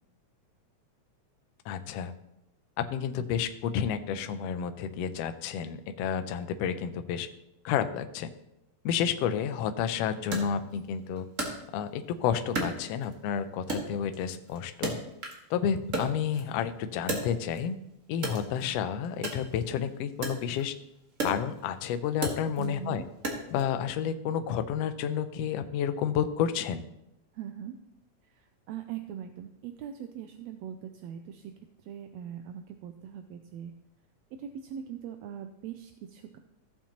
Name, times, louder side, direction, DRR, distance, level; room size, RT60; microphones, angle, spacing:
voice 1, 1.7-2.1 2.8-7.3 7.6-8.3 8.8-11.3 11.7-14.9 15.5-17.8 18.1-20.7 21.2-23.0 23.5-26.8, left 8 dB, 80° left, 9 dB, 1.5 m, -30 dB
Wood, 10.3-12.1 12.5-13.3 13.7-15.5 15.8-17.7 18.1-23.7, right 2 dB, 40° right, 1.2 m, -36 dB
voice 2, 22.6-23.0 27.3-27.7 28.3-31.5 31.8-33.7 34.4-36.4, right 9 dB, 80° right, 7 dB, 1.6 m, -41 dB
15.0 x 7.2 x 2.9 m, 0.85 s
omnidirectional pair, 3.5 m